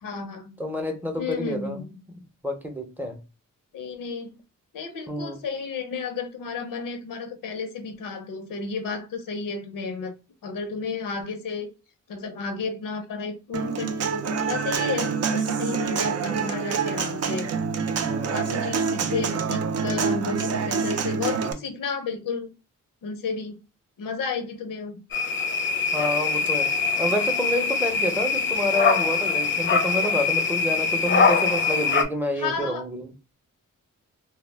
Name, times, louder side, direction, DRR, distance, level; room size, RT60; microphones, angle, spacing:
voice 1, 0.0-0.5 1.2-2.0 3.7-4.4 4.7-10.1 10.4-11.7 12.1-17.5 18.3-22.5 23.0-23.6 24.0-25.0 32.4-32.8, left 4 dB, 85° left, 0.7 m, -32 dB
voice 2, 0.6-1.8 2.4-3.2 5.1-5.4 15.9-16.6 18.0-18.6 21.5-21.6 25.9-26.7 27.0-33.1, equal, 5° right, 0.6 m, -29 dB
Human voice / Acoustic guitar, 13.5-21.5, right 6 dB, 50° right, 0.4 m, -26 dB
sound 1, 25.1-32.0, left 5 dB, 40° left, 0.4 m, -23 dB
2.3 x 2.1 x 3.2 m
cardioid pair, 100°, 32 cm